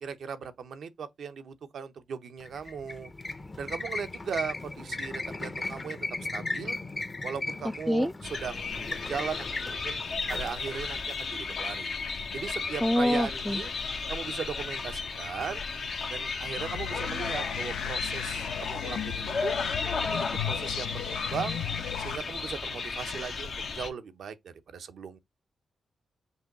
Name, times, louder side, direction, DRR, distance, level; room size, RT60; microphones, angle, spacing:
voice 1, 0.0-3.1 3.6-6.1 6.3-6.8 7.2-10.0 10.3-12.0 12.3-13.7 14.1-15.6 16.1-19.5 20.0-21.6 22.0-25.2, right 6 dB, 75° right, 0.7 m, -38 dB
sound 1, 2.4-11.7, left 2 dB, 35° left, 0.8 m, -37 dB
sound 2, 8.2-23.9, left 4 dB, 70° left, 0.9 m, -34 dB
voice 2, 12.8-13.6, left 1 dB, 5° left, 0.4 m, -25 dB
sound 3, 16.6-22.2, left 10 dB, 90° left, 0.4 m, -36 dB
5.5 x 2.2 x 3.9 m
supercardioid pair, 50°, 0 cm